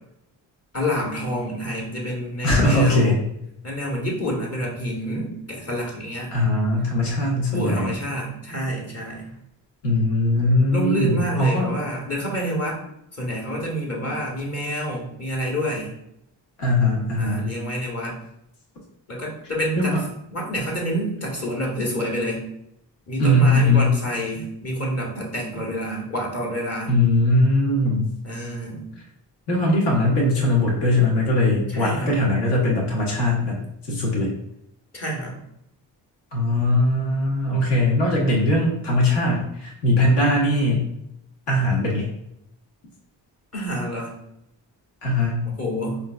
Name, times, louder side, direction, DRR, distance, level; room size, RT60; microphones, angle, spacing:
voice 1, 0.7-3.2 3.6-6.3 7.5-9.3 10.7-12.8 13.1-15.9 17.2-18.2 19.1-20.0 20.3-22.4 23.1-26.9 28.2-28.8 31.7-32.1 34.9-35.4 43.5-44.1 45.5-46.0, equal, 30° left, -3 dB, 1.4 m, -28 dB
voice 2, 2.4-3.2 6.3-7.9 9.8-11.7 16.6-17.4 19.7-20.0 23.2-23.9 26.9-28.1 29.5-33.6 33.9-34.3 36.3-40.9 41.5-42.1 45.0-45.5, left 1 dB, 55° left, -4 dB, 1.4 m, -20 dB
3.7 x 2.7 x 2.3 m, 0.79 s
supercardioid pair, 45°, 49 cm